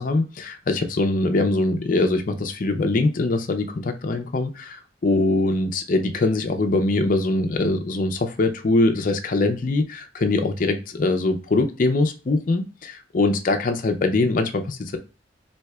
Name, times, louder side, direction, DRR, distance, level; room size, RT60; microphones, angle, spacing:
voice 1, 0.0-15.0, left 2 dB, 45° left, 0.5 m, -22 dB
4.4 x 2.8 x 2.2 m
head